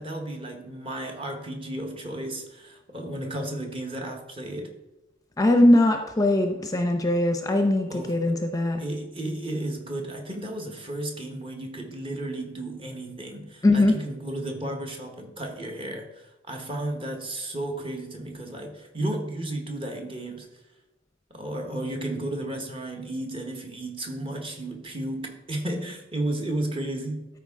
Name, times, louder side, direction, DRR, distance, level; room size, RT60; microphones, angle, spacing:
voice 1, 0.0-4.7 7.9-8.4 8.8-20.5 21.3-27.3, right 1 dB, 30° right, 3 dB, 1.1 m, -33 dB
voice 2, 5.4-8.8 13.6-14.0, left 1 dB, 20° left, 5 dB, 0.6 m, -21 dB
12.5 x 4.6 x 3.6 m, 1.0 s
head